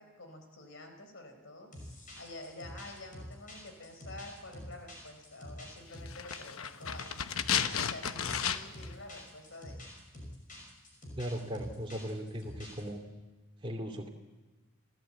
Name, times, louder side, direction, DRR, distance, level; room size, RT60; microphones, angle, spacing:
voice 1, 0.0-1.7 2.2-7.1 7.6-9.8, left 2 dB, 60° left, 6 dB, 4.1 m, -49 dB
sound 1, 1.7-12.9, left 1 dB, 40° left, 5.9 m, -47 dB
sound 2, 6.1-8.9 9.2-9.3, left 8 dB, 90° left, 1.0 m, -33 dB
voice 2, 11.2-13.0 13.6-14.1, equal, 25° right, 1 dB, 2.5 m, -38 dB
29.0 x 14.5 x 8.6 m, 1.2 s
head